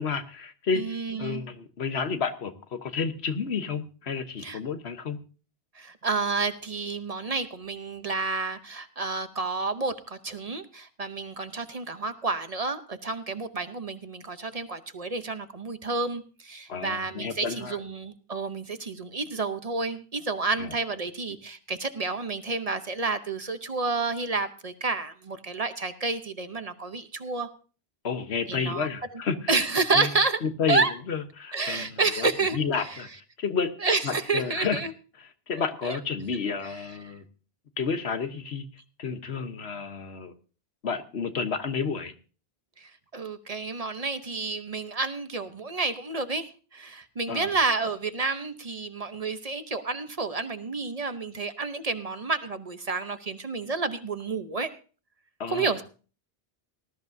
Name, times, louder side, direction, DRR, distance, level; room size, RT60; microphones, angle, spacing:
voice 1, 0.0-0.8 1.2-5.2 16.7-17.8 20.6-20.7 28.0-29.6 29.9-30.1 30.4-30.8 31.1-33.7 34.0-34.8 35.5-37.2 37.8-38.7 39.0-40.3 40.8-42.1 47.3-47.5 55.4-55.7, left 5 dB, 90° left, 9 dB, 1.4 m, -31 dB
voice 2, 0.7-1.4 4.4-4.6 5.7-27.5 28.5-29.2 29.5-30.4 30.7-30.9 31.5-33.0 33.8-34.9 35.6-36.0 37.1-37.2 42.8-54.7 55.5-55.8, right 3 dB, 40° right, 10 dB, 0.9 m, -30 dB
19.0 x 13.5 x 2.7 m, 0.37 s
omnidirectional pair, 1.1 m